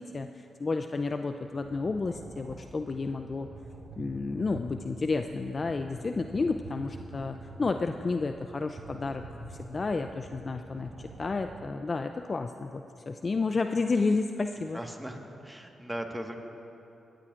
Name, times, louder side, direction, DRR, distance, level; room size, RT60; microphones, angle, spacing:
voice 1, 0.0-3.5 4.0-9.2 9.5-14.8, left 3 dB, 45° left, 7 dB, 0.4 m, -31 dB
sound 1, 1.6-11.7, right 2 dB, 65° right, 1.4 m, -46 dB
voice 2, 14.7-16.4, right 1 dB, 10° right, 3 dB, 1.5 m, -38 dB
18.0 x 13.5 x 2.5 m, 2.9 s
supercardioid pair, 50°, 0 cm